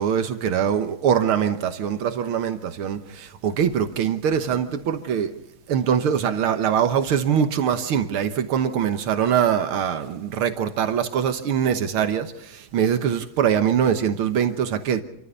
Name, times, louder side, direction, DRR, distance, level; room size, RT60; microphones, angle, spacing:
voice 1, 0.0-5.4 5.7-15.0, right 8 dB, 85° right, 8 dB, 2.1 m, -23 dB
27.5 x 14.5 x 6.9 m, 0.86 s
omnidirectional pair, 2.3 m